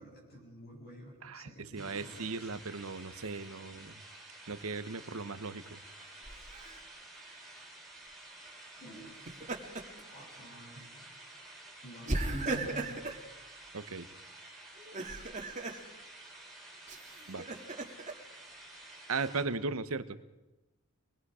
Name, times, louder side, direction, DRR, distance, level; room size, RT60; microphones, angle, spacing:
voice 1, 0.0-2.5 8.8-9.2 10.1-10.9 11.8-13.0, right 1 dB, 45° left, -1 dB, 7.8 m, -48 dB
voice 2, 1.2-4.0 4.5-5.8 13.7-14.1 17.3-17.4 19.1-20.2, right 4 dB, 70° right, 12 dB, 1.0 m, -37 dB
sound 1, 1.8-19.4, right 2 dB, ahead, 4.8 m, -51 dB
Laughter, 6.2-6.8 9.1-10.0 10.4-10.6 12.1-13.2 14.8-15.8 16.9-18.1, right 2 dB, 35° right, 2.1 m, -37 dB
25.5 x 21.0 x 4.9 m, 1.0 s
head